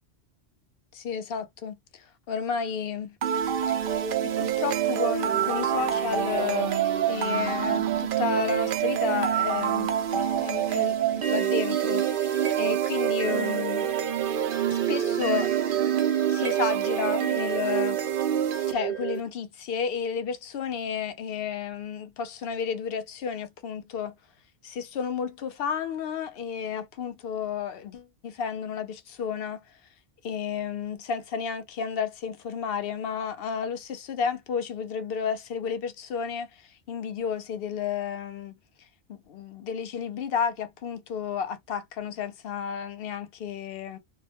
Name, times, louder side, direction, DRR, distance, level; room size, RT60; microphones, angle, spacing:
voice 1, 0.9-3.1 3.7-3.8 4.2-13.9 14.7-15.5 16.3-18.0 18.7-24.2 24.6-29.8 30.2-44.0, left 7 dB, 65° left, 0.7 m, -32 dB
sound 1, 3.2-19.2, right 10 dB, 60° right, 0.6 m, -26 dB
2.3 x 2.1 x 2.7 m
omnidirectional pair, 1.2 m